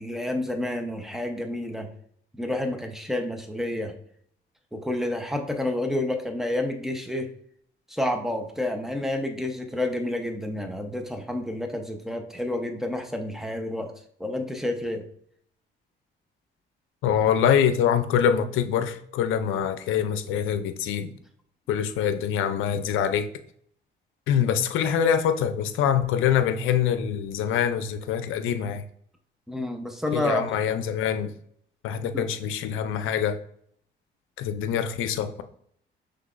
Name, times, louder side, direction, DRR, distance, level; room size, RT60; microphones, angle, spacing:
voice 1, 0.0-1.9 2.3-3.9 4.7-7.3 7.9-13.9 14.2-15.0 29.5-30.4 32.1-32.2, left 1 dB, ahead, 4 dB, 0.8 m, -29 dB
voice 2, 17.0-21.1 21.7-23.3 24.3-28.8 30.1-31.3 31.8-33.4 34.4-35.4, left 8 dB, 90° left, 10 dB, 0.5 m, -24 dB
5.7 x 3.3 x 2.5 m, 0.65 s
cardioid pair, 90°, 20 cm